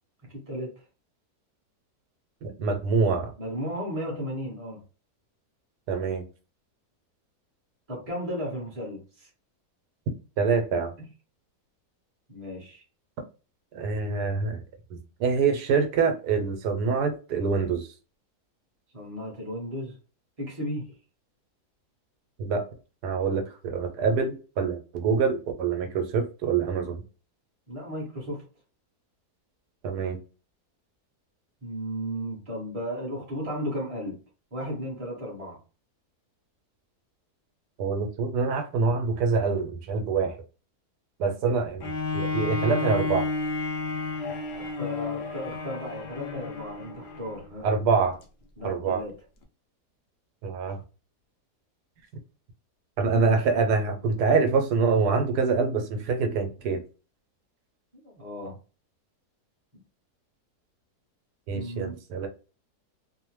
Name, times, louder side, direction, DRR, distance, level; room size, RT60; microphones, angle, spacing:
voice 1, 0.3-0.7 3.4-4.8 7.9-9.3 12.3-12.8 18.9-20.0 20.4-20.9 27.7-28.4 31.6-34.2 34.5-35.6 41.4-41.6 44.5-47.7 48.6-49.1 58.0-58.6 61.5-61.9, equal, 30° right, 0.8 m, -34 dB
voice 2, 2.4-3.3 5.9-6.2 10.4-11.0 13.7-14.6 15.2-17.9 22.4-22.6 23.0-27.0 29.8-30.2 37.8-40.3 41.2-43.3 47.6-48.2 48.6-49.0 50.4-50.8 53.0-56.8 61.5-62.3, right 5 dB, 80° right, 1.2 m, -25 dB
Bowed string instrument, 41.8-47.4 48.1-48.2, left 3 dB, 80° left, 0.5 m, -31 dB
2.8 x 2.0 x 3.0 m
omnidirectional pair, 1.7 m